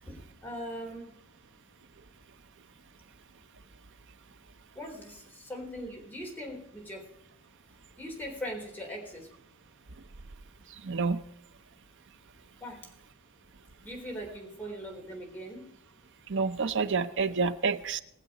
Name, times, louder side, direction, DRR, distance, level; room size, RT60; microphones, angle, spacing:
voice 1, 0.0-1.2 4.8-7.1 8.0-9.3 12.6-12.9 13.8-15.7, equal, 10° left, 3.8 m, -40 dB
voice 2, 10.7-11.2 16.3-18.0, right 4 dB, 60° right, 0.7 m, -28 dB
21.5 x 7.5 x 4.9 m
head